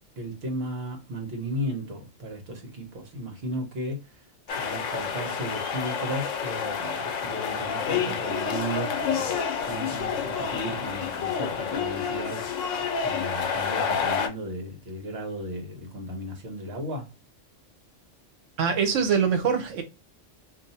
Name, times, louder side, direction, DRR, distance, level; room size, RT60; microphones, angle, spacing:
voice 1, 0.2-4.2 4.5-9.4 9.7-12.5 13.0-17.1, equal, 55° right, 1.2 m, -35 dB
sound 1, 4.5-14.3, left 6 dB, 80° left, 1.0 m, -29 dB
voice 2, 18.6-19.8, right 6 dB, 75° right, 1.1 m, -23 dB
2.6 x 2.4 x 4.0 m
omnidirectional pair, 1.3 m